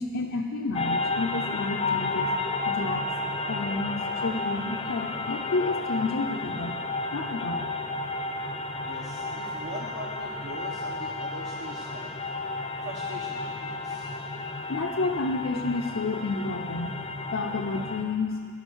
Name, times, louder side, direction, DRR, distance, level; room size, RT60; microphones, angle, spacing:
voice 1, 0.0-2.3 2.7-3.1 3.5-6.8 7.1-7.7 14.7-17.0 17.3-18.4, left 3 dB, 70° left, -1 dB, 0.7 m, -30 dB
sound 1, 0.7-18.0, left 3 dB, 25° left, 0.6 m, -32 dB
voice 2, 8.8-12.3 12.8-14.2, right 1 dB, 55° right, -1 dB, 1.1 m, -42 dB
13.0 x 10.5 x 6.3 m, 2.2 s
head